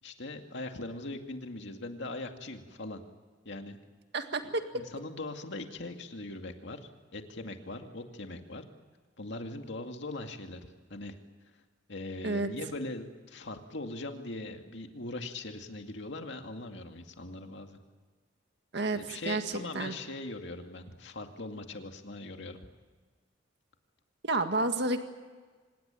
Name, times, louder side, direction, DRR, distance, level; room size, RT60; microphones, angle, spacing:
voice 1, 0.0-3.0 3.4-3.8 4.7-6.8 7.1-8.6 9.2-11.1 11.9-17.8 18.9-22.6, left 2 dB, 65° left, 5 dB, 2.3 m, -40 dB
voice 2, 4.1-4.6 12.2-12.5 18.7-19.4 19.7-19.9 24.2-25.0, right 2 dB, 60° right, 7 dB, 1.8 m, -30 dB
25.5 x 19.5 x 9.1 m, 1.4 s
head